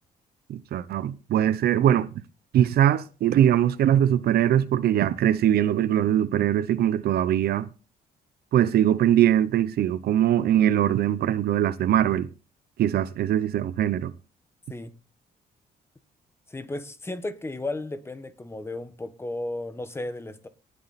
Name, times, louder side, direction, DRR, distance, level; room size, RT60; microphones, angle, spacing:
voice 1, 0.5-2.1 2.5-7.7 8.5-12.3 12.8-14.1, right 11 dB, 75° right, 0.8 m, -22 dB
voice 2, 16.5-20.5, left 2 dB, 15° left, 1.3 m, -34 dB
18.5 x 7.5 x 4.2 m
cardioid pair, 125°, 16 cm